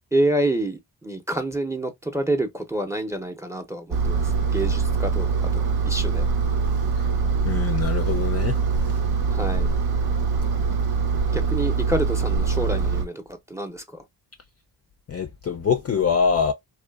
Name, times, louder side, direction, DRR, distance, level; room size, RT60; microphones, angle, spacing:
voice 1, 0.1-6.2 9.3-9.7 11.3-14.0, right 1 dB, 5° right, 0.6 m, -28 dB
Engine, 3.9-13.0, right 5 dB, 60° right, 0.7 m, -23 dB
voice 2, 7.4-8.6 15.1-16.5, left 6 dB, 35° left, 0.4 m, -24 dB
2.4 x 2.3 x 2.2 m
cardioid pair, 55°, 43 cm